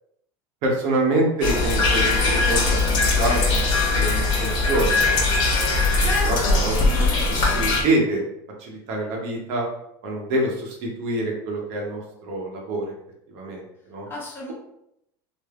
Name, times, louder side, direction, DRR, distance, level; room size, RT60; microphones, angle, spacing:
voice 1, 0.6-2.8 3.1-6.7 7.5-8.2 8.6-9.7 10.0-12.9 13.3-14.1, right 2 dB, 65° right, 0 dB, 0.8 m, -26 dB
sound 1, 1.4-7.8, left 3 dB, 50° left, 0.9 m, -20 dB
voice 2, 6.0-7.6 14.0-14.5, left 2 dB, 20° left, -4 dB, 1.0 m, -33 dB
3.4 x 2.0 x 2.4 m, 0.80 s
supercardioid pair, 115°, 10 cm